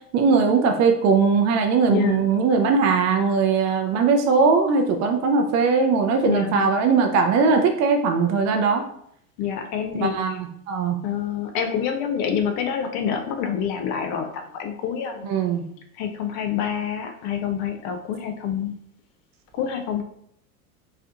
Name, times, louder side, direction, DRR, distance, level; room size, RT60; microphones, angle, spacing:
voice 1, 0.1-8.8 10.0-11.0 15.2-15.6, right 5 dB, 35° right, 4 dB, 0.4 m, -20 dB
voice 2, 1.9-2.2 6.2-6.7 9.4-10.4 11.0-15.3 16.0-18.7 19.5-20.0, left 8 dB, 40° left, 5 dB, 0.5 m, -27 dB
4.1 x 2.4 x 2.4 m, 0.70 s
hypercardioid pair, 75°, 47 cm